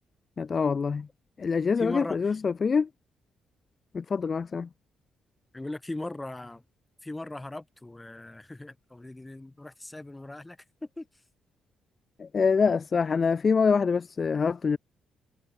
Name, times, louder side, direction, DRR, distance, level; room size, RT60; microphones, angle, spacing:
voice 1, 0.4-1.1 1.4-2.9 3.9-4.7 12.2-14.8, left 5 dB, 40° left, 0.3 m, -25 dB
voice 2, 1.8-2.2 5.5-6.6 7.0-11.1, left 2 dB, 15° left, 0.7 m, -38 dB
cardioid pair, 90°, 0 cm